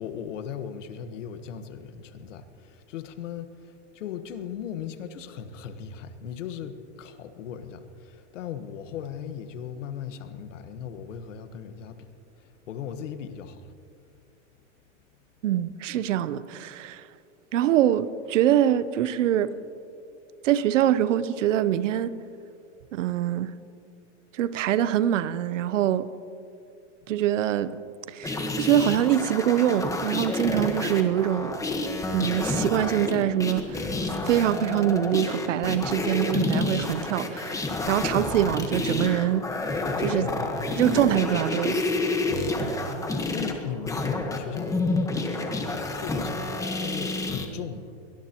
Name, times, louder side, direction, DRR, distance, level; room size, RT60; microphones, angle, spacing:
voice 1, 0.0-12.1 12.4-13.7 40.2-40.8 42.3-47.9, left 8 dB, 80° left, 1.4 m, -38 dB
voice 2, 15.4-17.0 17.5-19.6 20.4-22.1 22.9-23.5 24.3-26.1 27.1-27.8 28.1-31.6 32.1-39.4 40.0-40.3 40.8-41.8, right 11 dB, 85° right, 0.8 m, -24 dB
sound 1, 28.2-47.5, left 2 dB, 10° left, 1.2 m, -29 dB
22.5 x 19.5 x 3.0 m
supercardioid pair, 140°, 37 cm